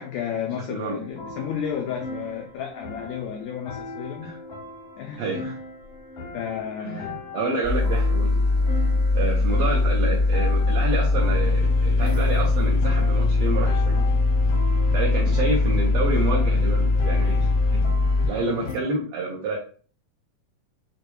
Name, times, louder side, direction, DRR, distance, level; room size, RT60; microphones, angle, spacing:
voice 1, 0.0-4.3 5.0-5.5 6.3-7.2, left 8 dB, 90° left, 3 dB, 1.5 m, -32 dB
sound 1, 1.0-18.7, left 5 dB, 75° left, 1.4 m, -35 dB
voice 2, 5.2-5.6 6.8-8.4 9.1-14.1 14.9-18.0 18.2-19.6, right 3 dB, 80° right, -2 dB, 1.4 m, -29 dB
sound 2, 7.6-18.3, left 3 dB, 50° right, 0.6 m, -21 dB
6.6 x 2.2 x 3.0 m, 0.40 s
omnidirectional pair, 3.8 m